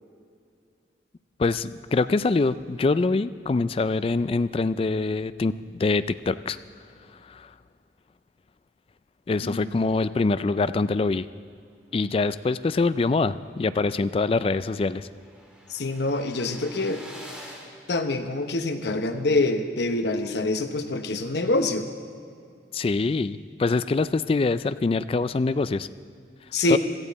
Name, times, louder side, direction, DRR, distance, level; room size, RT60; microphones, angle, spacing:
voice 1, 1.4-6.6 7.3-7.5 9.3-11.3 11.9-15.1 22.7-25.9 26.7-26.8, left 3 dB, 30° left, 14 dB, 0.3 m, -24 dB
sound 1, 14.0-18.8, equal, 5° right, 1.8 m, -47 dB
voice 2, 15.7-17.0 17.9-21.9 26.5-26.8, left 2 dB, 65° left, 7 dB, 0.9 m, -25 dB
17.0 x 13.5 x 4.1 m, 2.3 s
head